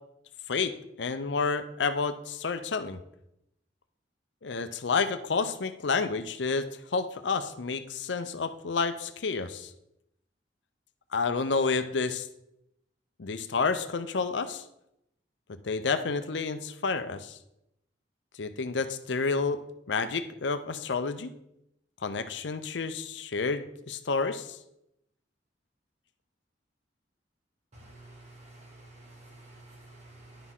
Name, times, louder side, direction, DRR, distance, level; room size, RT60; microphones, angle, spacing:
voice 1, 0.5-3.0 4.4-9.7 11.1-12.3 13.2-14.6 15.6-17.4 18.4-19.6 19.9-21.3 22.0-24.6, left 4 dB, 70° left, 10 dB, 0.6 m, -30 dB
voice 2, 27.7-30.5, right 2 dB, 40° right, 0 dB, 2.2 m, -51 dB
10.5 x 6.3 x 3.8 m, 0.81 s
head